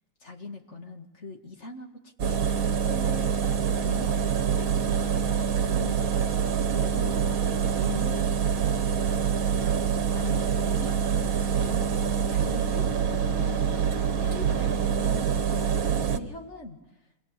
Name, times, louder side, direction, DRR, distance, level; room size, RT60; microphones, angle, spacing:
voice 1, 0.2-3.3 3.8-6.3 6.6-9.2 9.8-16.8, left 2 dB, 45° left, 3 dB, 2.2 m, -42 dB
Engine, 2.2-16.2, right 7 dB, 60° right, 1.5 m, -25 dB
27.5 x 22.0 x 8.2 m, 0.97 s
omnidirectional pair, 1.7 m